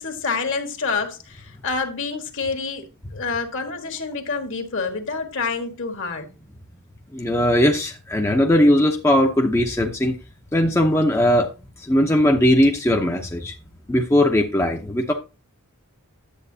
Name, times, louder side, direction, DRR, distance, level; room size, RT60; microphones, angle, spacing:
voice 1, 0.0-6.3, left 4 dB, 60° left, 1.5 m, -28 dB
voice 2, 7.1-10.1 10.5-11.5 11.9-13.5 13.9-15.1, left 1 dB, 10° left, 0.7 m, -19 dB
10.0 x 7.6 x 2.7 m
head